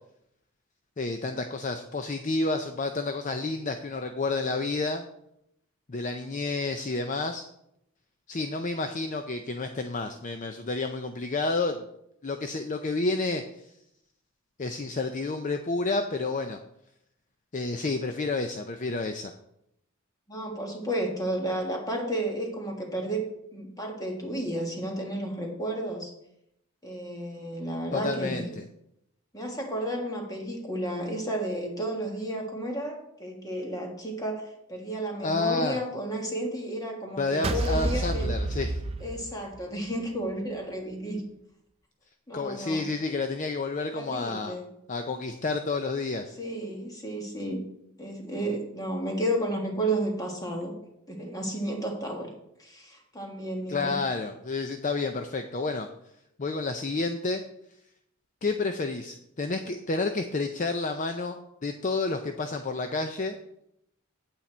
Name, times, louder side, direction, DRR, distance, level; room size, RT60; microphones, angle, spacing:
voice 1, 1.0-5.0 5.9-7.4 8.3-11.9 12.2-13.7 14.6-16.6 17.5-19.3 27.9-28.6 35.2-35.8 37.2-38.8 42.3-44.6 44.9-46.4 53.7-55.9 56.4-57.4 58.4-63.4, left 3 dB, 35° left, 7 dB, 0.5 m, -30 dB
voice 2, 20.3-23.2 23.5-26.1 26.8-28.5 29.3-38.3 39.0-41.2 42.3-42.9 43.9-44.7 46.4-47.6 48.0-50.7 51.1-52.3 52.6-54.0, right 1 dB, 15° left, 1 dB, 1.7 m, -32 dB
sound 1, 37.4-39.8, right 2 dB, 30° right, 0.5 m, -29 dB
8.6 x 8.4 x 4.4 m, 0.79 s
head